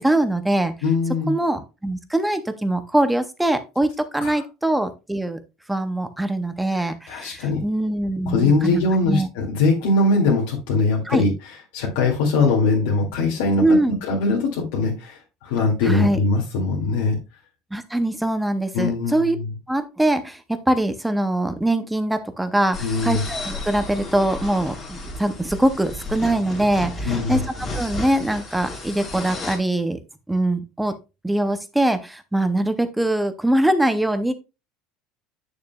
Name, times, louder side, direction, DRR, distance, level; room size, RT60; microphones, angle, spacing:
voice 1, 0.0-0.7 1.3-5.4 5.7-9.3 11.1-11.2 13.6-14.0 15.8-16.2 17.7-19.4 19.7-30.0 30.3-30.9 31.2-34.3, right 1 dB, 5° right, 10 dB, 0.5 m, -22 dB
voice 2, 0.8-1.3 4.2-4.4 6.7-7.6 8.3-11.3 11.7-17.2 18.7-19.5 22.8-23.2 27.1-27.4, left 3 dB, 85° left, -2 dB, 2.2 m, -21 dB
sound 1, 22.7-29.6, left 2 dB, 25° left, 2.2 m, -33 dB
8.7 x 6.7 x 2.3 m, 0.27 s
cardioid pair, 170°, 0 cm